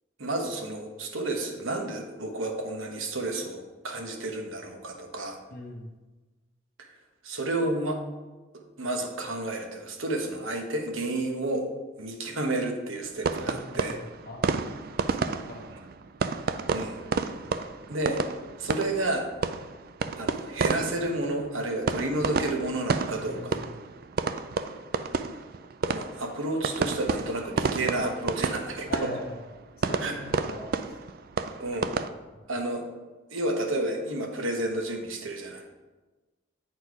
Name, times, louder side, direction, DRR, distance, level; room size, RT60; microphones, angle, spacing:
voice 1, 0.2-5.4 6.8-6.9 7.2-8.0 8.8-11.7 12.0-14.0 15.7-15.8 16.7-17.0 17.9-18.2 18.6-19.3 20.2-23.6 25.9-29.1 30.0-30.2 31.6-31.9 32.5-32.8 33.3-35.6, right 2 dB, 90° right, 3 dB, 1.1 m, -31 dB
voice 2, 5.5-5.9 13.4-14.4 15.2-15.7 17.4-17.5 23.2-23.7 28.9-29.4 29.8-31.0 32.3-32.4, left 1 dB, 50° left, 0 dB, 1.2 m, -42 dB
sound 1, 13.2-32.1, right 4 dB, 50° right, 0.3 m, -31 dB
8.4 x 4.4 x 4.7 m, 1.2 s
head